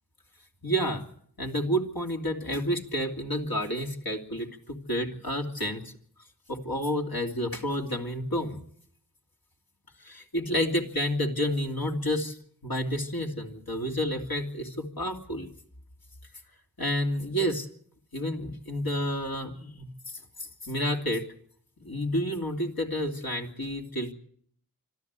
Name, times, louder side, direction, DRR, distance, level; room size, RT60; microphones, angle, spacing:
voice 1, 0.6-1.0 1.4-5.9 6.5-8.6 10.0-12.4 12.6-15.5 16.8-17.7 18.1-19.9 20.4-21.2 21.8-24.1, equal, 85° left, 1 dB, 2.9 m, -30 dB
26.0 x 13.5 x 8.3 m, 0.62 s
wide cardioid pair, 50°, 35 cm